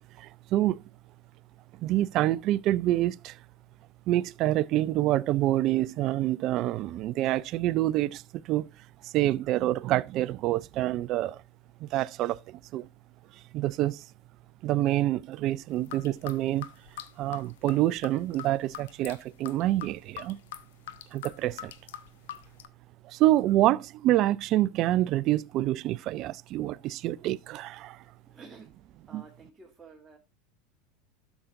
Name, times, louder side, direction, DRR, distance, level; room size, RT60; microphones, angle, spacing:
voice 1, 0.2-0.8 1.8-3.4 4.1-8.7 9.0-11.4 11.8-12.9 13.5-14.0 14.6-16.7 17.2-20.4 21.1-21.7 23.0-28.0 29.1-29.2, right 15 dB, 50° right, 0.4 m, -27 dB
sound 1, 15.7-22.7, left 11 dB, 70° left, 0.8 m, -43 dB
voice 2, 28.3-28.7 29.1-30.2, right 4 dB, 20° right, 1.8 m, -50 dB
12.0 x 7.1 x 2.6 m
hypercardioid pair, 80°, 0 cm